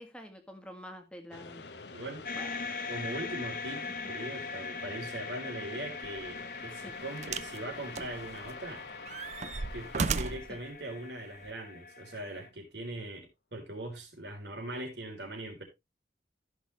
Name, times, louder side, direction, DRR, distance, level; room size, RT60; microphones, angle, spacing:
voice 1, 0.0-1.6 2.3-2.8 6.7-6.9 10.5-10.6, equal, 5° left, 1.8 m, -47 dB
sound 1, 1.3-11.6, left 4 dB, 75° left, 1.1 m, -48 dB
voice 2, 1.9-2.3 2.9-8.8 9.7-15.6, right 1 dB, 75° right, 3.8 m, -41 dB
sound 2, 2.2-12.5, left 4 dB, 50° left, 1.2 m, -42 dB
sound 3, 6.0-6.2 7.2-7.6 7.9-8.7 9.1-10.5 11.4-11.5, right 4 dB, 40° right, 0.5 m, -34 dB
14.5 x 6.3 x 3.2 m
head